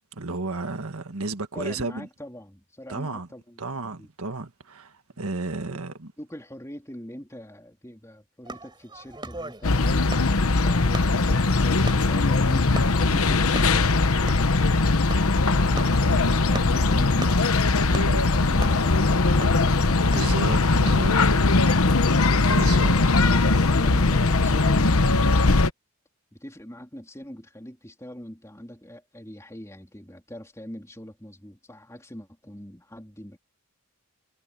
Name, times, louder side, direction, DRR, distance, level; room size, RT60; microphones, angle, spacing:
voice 1, 0.1-2.1 2.9-3.3 3.6-6.1 18.0-18.2 20.1-21.1 22.4-23.2, right 3 dB, 80° right, 1.6 m, -33 dB
voice 2, 1.5-4.1 5.1-5.2 5.6-5.8 6.2-14.9 26.3-33.4, equal, 15° left, 3.6 m, -42 dB
sound 1, 8.4-21.2, right 2 dB, 20° right, 5.1 m, -40 dB
sound 2, 9.6-25.7, left 3 dB, 75° left, 1.1 m, -20 dB
head